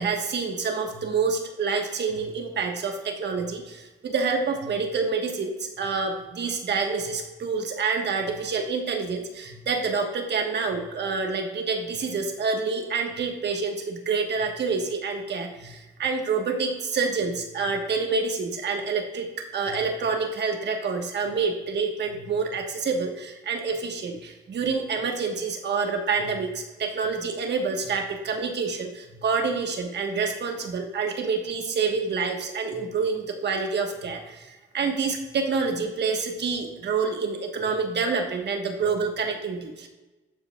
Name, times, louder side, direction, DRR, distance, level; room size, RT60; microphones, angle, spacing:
voice 1, 0.0-39.9, right 4 dB, 60° right, 4 dB, 1.3 m, -27 dB
13.0 x 4.8 x 2.3 m, 1.1 s
cardioid pair, 80°, 20 cm